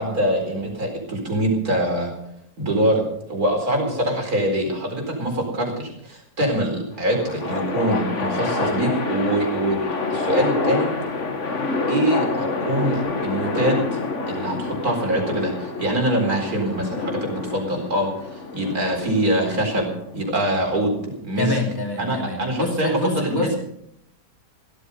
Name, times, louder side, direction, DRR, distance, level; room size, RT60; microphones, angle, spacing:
voice 1, 0.0-2.1 2.6-3.0 3.3-9.8 10.1-10.9 11.9-14.0 14.3-21.0 21.2-21.5 22.0-23.5, right 1 dB, 65° right, 1 dB, 4.7 m, -24 dB
sound 1, 6.9-20.3, left 3 dB, 50° left, 1.9 m, -27 dB
voice 2, 21.4-23.5, left 2 dB, 15° left, 1 dB, 3.1 m, -26 dB
16.5 x 13.0 x 5.5 m, 0.74 s
omnidirectional pair, 1.7 m